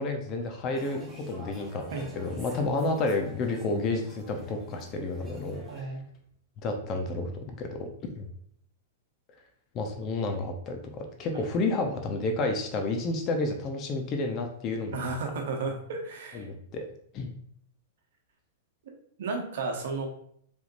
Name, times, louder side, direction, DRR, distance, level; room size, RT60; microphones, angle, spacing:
voice 1, 0.0-1.8 2.2-5.9 6.6-7.9 8.1-8.3 9.7-15.1 16.3-16.8 17.1-17.3, left 2 dB, 35° left, 4 dB, 0.9 m, -30 dB
sound 1, 0.7-5.8, equal, 10° right, 1.2 m, -47 dB
voice 2, 5.7-6.0 14.9-16.5 18.9-20.1, right 3 dB, 65° right, 3 dB, 1.1 m, -33 dB
4.9 x 3.5 x 2.7 m, 0.66 s
hypercardioid pair, 110°, 0 cm